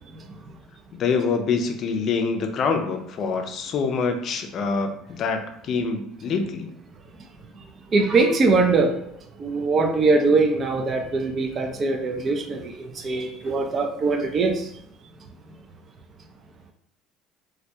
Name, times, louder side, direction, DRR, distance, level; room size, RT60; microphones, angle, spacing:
voice 1, 0.9-6.7, left 5 dB, 50° left, 5 dB, 0.4 m, -25 dB
voice 2, 7.9-9.0 9.4-14.7, right 3 dB, 40° right, 4 dB, 0.4 m, -22 dB
2.2 x 2.2 x 2.7 m, 0.72 s
supercardioid pair, 85°, 0 cm